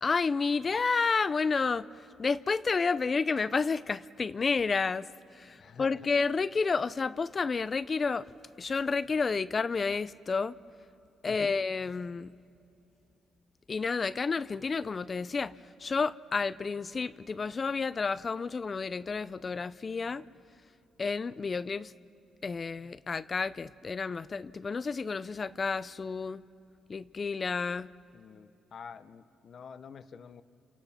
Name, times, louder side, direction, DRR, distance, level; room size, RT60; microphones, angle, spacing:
voice 1, 0.0-1.9 2.2-5.1 5.3-8.3 8.6-10.5 11.2-12.3 13.7-15.5 15.8-20.2 21.0-21.9 22.4-26.4 26.9-27.9, left 4 dB, 35° left, 0.5 m, -30 dB
voice 2, 5.6-5.9 11.3-11.6 28.1-30.4, left 6 dB, 55° left, 0.9 m, -48 dB
29.5 x 28.0 x 5.9 m
cardioid pair, 90°, 0 cm